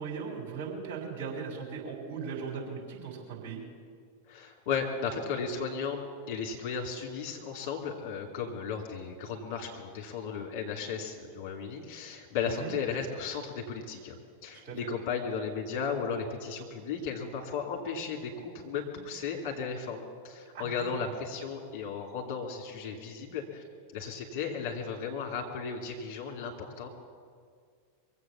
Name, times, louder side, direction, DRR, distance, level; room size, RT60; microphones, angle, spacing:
voice 1, 0.0-3.6 12.6-12.7 14.6-14.9 20.5-21.0, right 5 dB, 45° right, -2 dB, 4.7 m, -38 dB
voice 2, 4.3-14.2 14.4-23.6 23.9-26.9, left 6 dB, 45° left, 1 dB, 2.9 m, -35 dB
23.5 x 8.1 x 7.1 m, 2.1 s
figure-of-eight pair, 90°, 0 cm